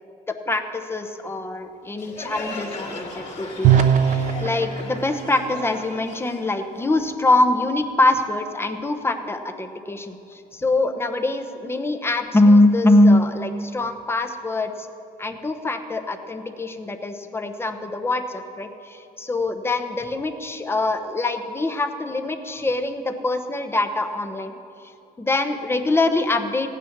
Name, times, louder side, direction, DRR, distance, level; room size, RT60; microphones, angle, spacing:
voice 1, 0.4-3.9 4.4-14.7 15.2-24.5 25.2-26.7, left 2 dB, 15° left, 6 dB, 0.9 m, -23 dB
Crowd, 2.0-7.4, left 2 dB, 40° left, 2.6 m, -37 dB
sound 1, 3.4-10.3, right 5 dB, 45° right, 0.9 m, -39 dB
Bowed string instrument, 3.6-4.5, right 9 dB, 80° right, 0.6 m, -17 dB
15.0 x 9.3 x 6.0 m, 2.6 s
cardioid pair, 110°, 17 cm